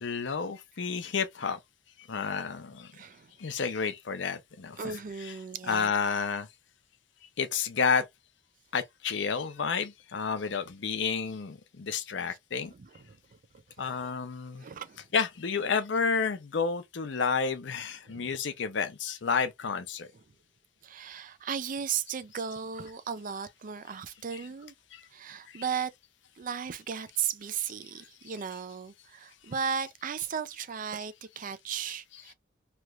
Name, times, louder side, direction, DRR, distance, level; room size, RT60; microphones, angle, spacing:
voice 1, 0.0-1.6 2.1-2.9 3.4-6.5 7.4-8.1 8.7-12.7 13.8-14.6 15.1-20.1 24.3-24.5 24.9-25.0 25.5-25.7 28.0-28.6 29.7-29.9 31.9-32.0, left 5 dB, 70° left, 0.6 m, -31 dB
voice 2, 2.9-3.3 4.8-5.9 12.3-12.4 12.7-14.1 14.6-15.1 18.0-18.4 20.8-24.7 25.1-25.9 26.4-32.3, right 7 dB, 45° right, 0.4 m, -36 dB
3.3 x 2.9 x 2.4 m
head